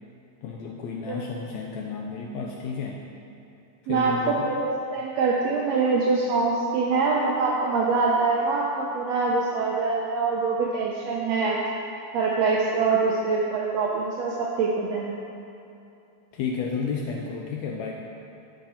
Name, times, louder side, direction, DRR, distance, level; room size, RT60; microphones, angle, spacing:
voice 1, 0.4-3.0 3.8-4.5 16.3-17.9, left 5 dB, 85° left, -1 dB, 1.5 m, -32 dB
voice 2, 3.9-11.6 12.1-15.2, right 4 dB, 85° right, -2 dB, 1.5 m, -24 dB
11.5 x 5.7 x 4.2 m, 2.7 s
omnidirectional pair, 3.8 m